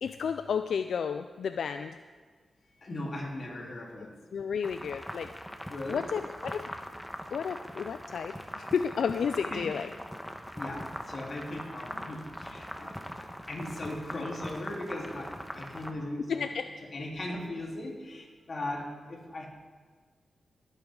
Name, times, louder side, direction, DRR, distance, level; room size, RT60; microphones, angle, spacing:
voice 1, 0.0-2.0 4.3-5.3 5.9-6.7 7.3-9.9 16.3-16.7, left 6 dB, 85° left, 9 dB, 0.4 m, -32 dB
voice 2, 2.8-4.2 5.7-6.1 9.5-9.6 10.5-16.5 16.9-19.5, left 1 dB, 50° left, -3 dB, 3.7 m, -38 dB
sound 1, 4.6-15.9, equal, 5° left, 1.2 m, -41 dB
21.5 x 8.9 x 3.9 m, 1.5 s
cardioid pair, 75°, 0 cm